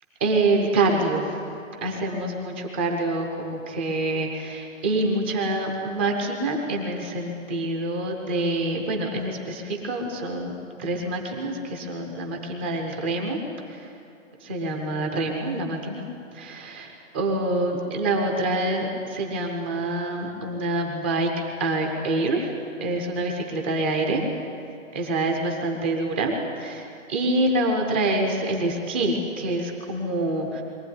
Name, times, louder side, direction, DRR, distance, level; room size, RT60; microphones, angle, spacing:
voice 1, 0.2-1.4 1.8-10.5 10.8-13.4 13.7-13.9 14.4-16.0 16.3-22.5 22.8-24.2 24.9-26.3 26.6-30.6, right 2 dB, 10° right, 2 dB, 0.7 m, -26 dB
23.0 x 15.5 x 9.6 m, 2.8 s
hypercardioid pair, 170°, 40 cm